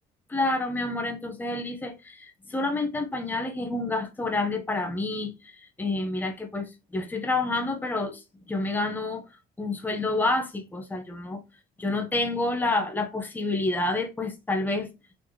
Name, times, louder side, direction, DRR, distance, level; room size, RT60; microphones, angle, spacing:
voice 1, 0.3-9.2 9.6-11.4 11.8-14.9, left 2 dB, 10° left, 0.8 m, -29 dB
4.2 x 3.0 x 3.2 m
cardioid pair, 110°, 17 cm